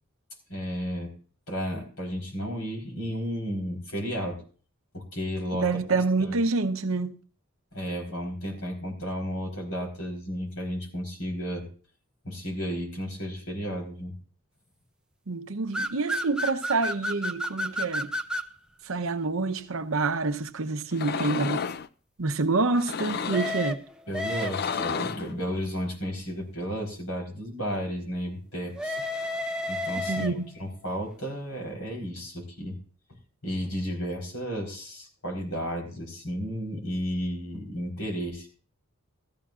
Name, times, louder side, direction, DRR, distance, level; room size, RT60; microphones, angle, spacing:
voice 1, 0.5-1.1 1.5-4.4 4.9-5.7 6.2-6.3 7.7-11.7 12.2-14.2 24.1-29.0 29.7-32.8 33.4-38.5, equal, 80° left, 4.2 m, -33 dB
voice 2, 5.5-7.2 15.3-18.1 18.8-21.7 22.2-23.8 30.1-30.5, right 3 dB, 70° right, 0.8 m, -27 dB
sound 1, 15.7-18.5 23.3-24.9 28.8-30.6, left 1 dB, 5° right, 0.5 m, -31 dB
sound 2, 20.9-21.9 22.7-23.6 24.3-25.3, left 6 dB, 50° left, 0.4 m, -32 dB
15.0 x 13.5 x 2.5 m
head